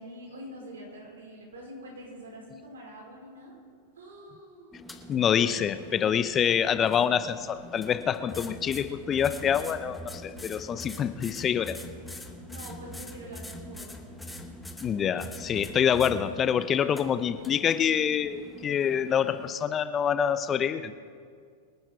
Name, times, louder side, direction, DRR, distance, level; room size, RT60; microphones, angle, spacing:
voice 1, 0.0-3.6 4.0-4.8 12.5-14.0, equal, 80° right, -1 dB, 4.9 m, -45 dB
sound 1, 4.7-19.5, left 1 dB, 5° left, 1.4 m, -44 dB
voice 2, 5.1-11.8 14.8-21.0, left 8 dB, 30° left, 12 dB, 0.7 m, -26 dB
25.5 x 9.2 x 4.6 m, 2.2 s
hypercardioid pair, 105°, 0 cm